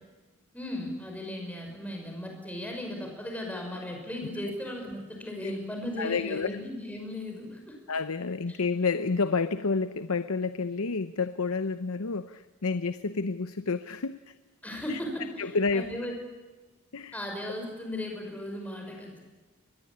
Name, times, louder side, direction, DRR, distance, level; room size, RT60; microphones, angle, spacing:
voice 1, 0.5-7.8 8.5-8.6 14.6-16.1 17.1-19.2, left 1 dB, 5° left, 2 dB, 5.9 m, -36 dB
voice 2, 6.0-6.5 7.9-14.3 14.9-15.0 15.4-15.9 16.9-17.2, left 4 dB, 80° left, 12 dB, 0.8 m, -29 dB
25.0 x 20.5 x 8.7 m, 1.3 s
head